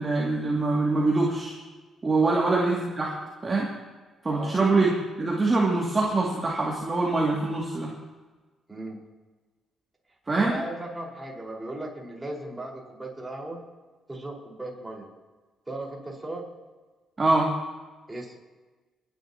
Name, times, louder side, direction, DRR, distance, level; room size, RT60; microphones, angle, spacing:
voice 1, 0.0-1.5 2.0-3.1 3.4-3.7 4.2-7.9 10.3-10.5 17.2-17.5, right 3 dB, 30° right, -4 dB, 2.6 m, -24 dB
voice 2, 10.4-13.6 14.1-15.1 15.7-16.4 18.1-18.4, right 1 dB, 15° right, -2 dB, 5.0 m, -37 dB
30.0 x 11.0 x 3.0 m, 1.3 s
cardioid pair, 90°, 0 cm